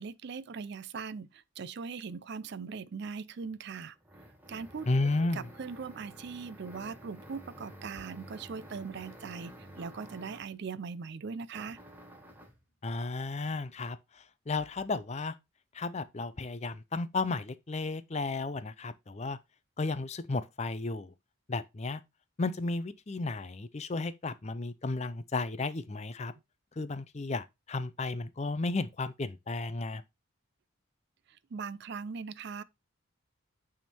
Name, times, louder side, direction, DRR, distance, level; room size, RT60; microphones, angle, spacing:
voice 1, 0.0-4.0 4.5-4.9 5.2-11.8 31.5-32.6, right 5 dB, 55° right, 0.4 m, -40 dB
sound 1, 3.4-10.6 11.5-12.6, equal, 10° right, 1.2 m, -51 dB
voice 2, 4.9-5.5 12.8-15.3 15.7-19.4 19.8-21.1 21.5-22.0 22.4-26.3 26.8-30.0, left 3 dB, 30° left, 0.5 m, -33 dB
8.9 x 3.6 x 4.3 m
head